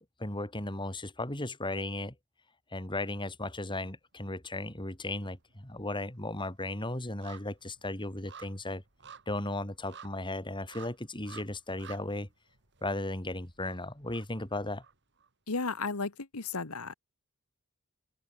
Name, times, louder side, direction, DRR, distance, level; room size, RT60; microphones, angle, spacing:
voice 1, 0.2-2.1 2.7-8.8 9.3-12.3 12.8-14.8, left 2 dB, 20° left, 3.6 m, -36 dB
sound 1, 4.3-5.0 5.3-15.3 15.6-15.7, right 7 dB, 55° right, 4.2 m, -54 dB
voice 2, 15.5-16.9, left 4 dB, 90° left, 1.6 m, -34 dB
head